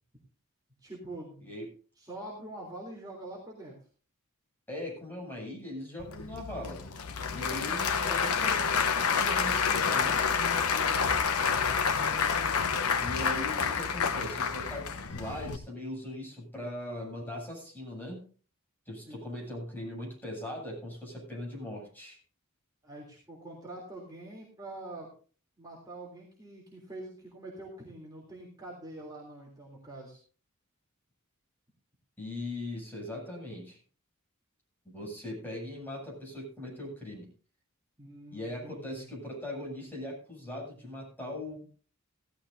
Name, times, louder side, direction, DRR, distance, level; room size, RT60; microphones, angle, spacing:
voice 1, 0.8-1.5 1.9-3.7 7.5-7.9 10.7-11.1 19.0-19.2 22.8-25.1 25.6-30.2 38.0-39.1, right 1 dB, 20° right, -4 dB, 3.3 m, -45 dB
voice 2, 4.7-6.8 7.3-10.2 13.0-18.2 18.9-22.2 32.2-33.8 34.8-37.3 38.3-41.8, left 1 dB, 10° left, -3 dB, 7.6 m, -40 dB
Applause / Crowd, 6.0-15.6, left 6 dB, 90° left, 1.0 m, -28 dB
17.0 x 14.0 x 2.7 m, 0.40 s
head